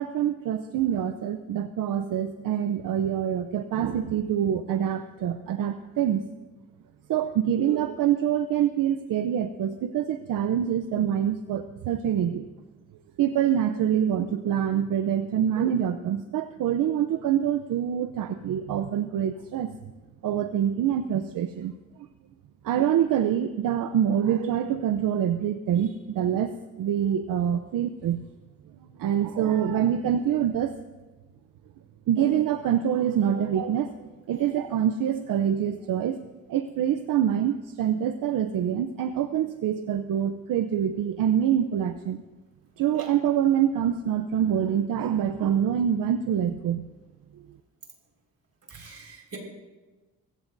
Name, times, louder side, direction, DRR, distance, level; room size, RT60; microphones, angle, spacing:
voice 1, 0.0-6.3 7.1-12.4 13.2-19.7 20.2-21.7 22.6-26.5 26.8-28.2 29.0-30.7 32.1-33.9 34.3-42.2 42.8-46.9 47.3-47.5, right 9 dB, 75° right, 9 dB, 0.7 m, -25 dB
voice 2, 48.7-49.4, right 4 dB, 45° right, 0 dB, 5.1 m, -42 dB
22.5 x 15.5 x 2.7 m, 1.2 s
cardioid pair, 95°, 34 cm